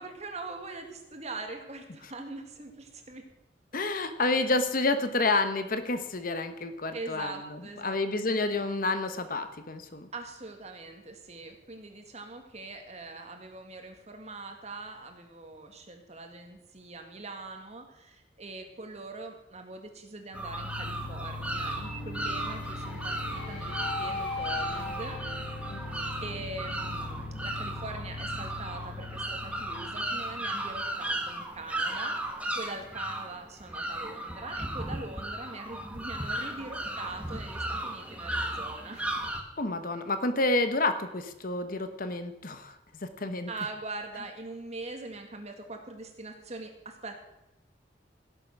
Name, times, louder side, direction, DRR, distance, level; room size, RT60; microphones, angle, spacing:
voice 1, 0.0-3.3 3.7-3.8 6.9-8.6 10.1-25.2 25.7-39.1 43.5-47.2, right 3 dB, 40° right, 4 dB, 2.0 m, -42 dB
voice 2, 3.7-10.1 25.7-25.8 39.6-43.5, left 2 dB, 50° left, 9 dB, 1.1 m, -29 dB
sound 1, 20.3-31.2, left 2 dB, 65° left, 6.6 m, -39 dB
sound 2, 20.3-39.4, right 1 dB, 5° right, 1.3 m, -36 dB
16.5 x 7.5 x 6.0 m, 0.88 s
head